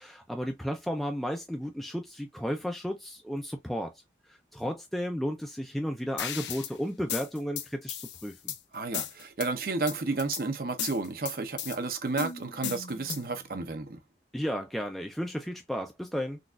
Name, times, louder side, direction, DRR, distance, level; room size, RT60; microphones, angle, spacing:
voice 1, 0.0-3.9 4.3-8.5 14.3-16.4, equal, ahead, 0.3 m, -33 dB
sound 1, 6.2-6.7 7.1-8.6 8.9-9.5 9.9-10.4 10.8-11.8 12.2-13.4, left 9 dB, 85° left, 0.5 m, -35 dB
voice 2, 8.7-14.0, right 3 dB, 55° right, 0.6 m, -32 dB
3.9 x 2.3 x 2.4 m
head